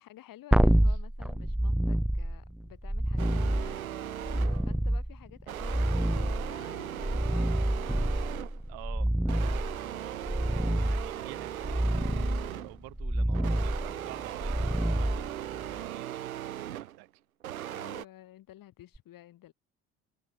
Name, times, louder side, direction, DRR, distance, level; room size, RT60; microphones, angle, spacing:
voice 1, 0.0-7.7 13.8-14.3 17.7-19.5, left 14 dB, 55° left, 7.2 m, -52 dB
sound 1, 0.5-15.8 18.9-19.0, right 1 dB, ahead, 0.6 m, -28 dB
sound 2, 3.2-4.7 5.5-8.7 9.3-12.8 13.3-17.0 17.4-18.0, right 12 dB, 85° right, 0.8 m, -38 dB
voice 2, 8.7-11.8 12.2-17.1, right 26 dB, 65° right, 5.4 m, -49 dB
figure-of-eight pair, 55°, 41 cm